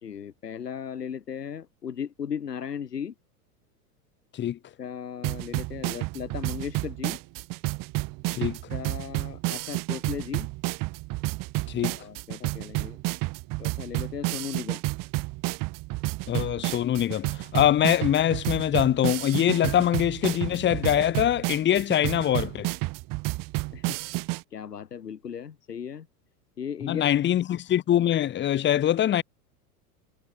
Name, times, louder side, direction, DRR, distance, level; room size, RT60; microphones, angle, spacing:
voice 1, 0.0-3.1 4.8-7.2 8.4-10.5 11.8-13.0 13.6-14.8 23.7-26.1 26.6-27.3, left 8 dB, 90° left, 3.0 m, -37 dB
sound 1, 5.2-24.4, right 23 dB, 45° right, 1.2 m, -31 dB
voice 2, 16.3-22.7 26.8-29.2, left 11 dB, 25° left, 0.8 m, -23 dB
hypercardioid pair, 95°, 46 cm